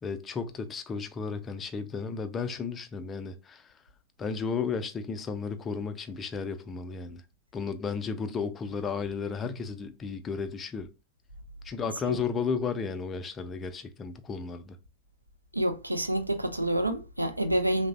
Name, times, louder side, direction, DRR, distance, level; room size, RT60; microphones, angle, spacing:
voice 1, 0.0-3.7 4.2-7.2 7.5-10.9 11.6-14.8, left 5 dB, 20° left, 0.3 m, -33 dB
voice 2, 15.5-17.9, right 1 dB, 85° right, 0.3 m, -28 dB
3.1 x 2.0 x 2.4 m
figure-of-eight pair, 90°, 0 cm